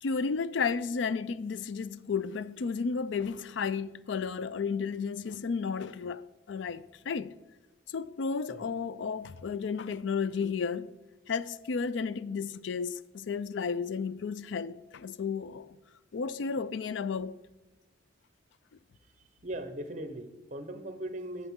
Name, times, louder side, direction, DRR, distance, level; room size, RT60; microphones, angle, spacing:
voice 1, 0.0-7.3 7.9-10.9 11.3-15.8 16.1-17.4, left 5 dB, 75° left, 0.4 m, -33 dB
voice 2, 19.4-21.5, right 1 dB, 40° right, 0.9 m, -39 dB
11.5 x 8.0 x 3.7 m
head